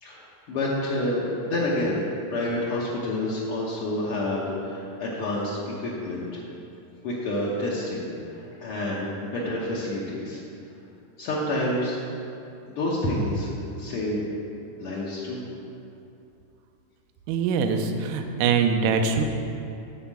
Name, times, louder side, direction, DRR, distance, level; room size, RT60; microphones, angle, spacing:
voice 1, 0.0-2.0 2.3-6.4 7.0-10.4 11.2-12.0 12.7-13.5 13.8-14.2 14.8-15.4, left 1 dB, 80° left, -6 dB, 1.2 m, -28 dB
voice 2, 17.3-19.2, right 5 dB, 85° right, 5 dB, 1.7 m, -23 dB
9.3 x 4.4 x 7.3 m, 2.7 s
omnidirectional pair, 4.1 m